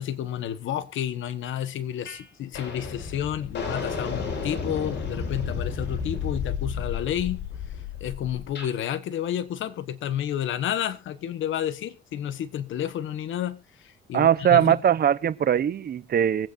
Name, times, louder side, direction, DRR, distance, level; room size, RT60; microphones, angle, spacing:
voice 1, 0.0-7.4 8.0-13.6 13.8-14.8, left 10 dB, 75° left, 1.3 m, -30 dB
sound 1, 2.1-2.2 2.5-8.7, left 5 dB, 60° left, 5.6 m, -32 dB
voice 2, 14.1-16.5, right 9 dB, 50° right, 0.8 m, -21 dB
24.5 x 8.7 x 2.6 m
cardioid pair, 90°, 20 cm